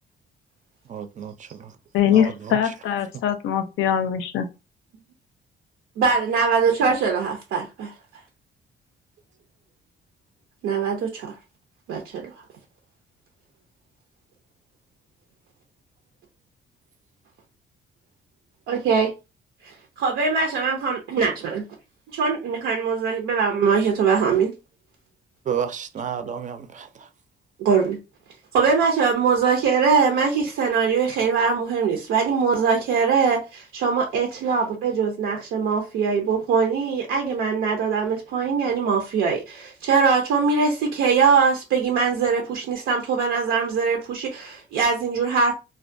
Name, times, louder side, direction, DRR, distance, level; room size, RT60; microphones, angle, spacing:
voice 1, 0.9-1.7 2.1-2.7 25.5-27.1, right 8 dB, 40° right, 0.4 m, -31 dB
voice 2, 1.9-4.5, left 9 dB, 85° left, 0.5 m, -22 dB
voice 3, 6.0-7.9 10.6-11.3 11.9-12.3 18.7-19.1 19.6-21.6 22.1-24.5 27.6-28.0 28.5-45.5, right 5 dB, 85° right, 0.5 m, -22 dB
2.3 x 2.1 x 2.5 m
cardioid pair, 90°, 20 cm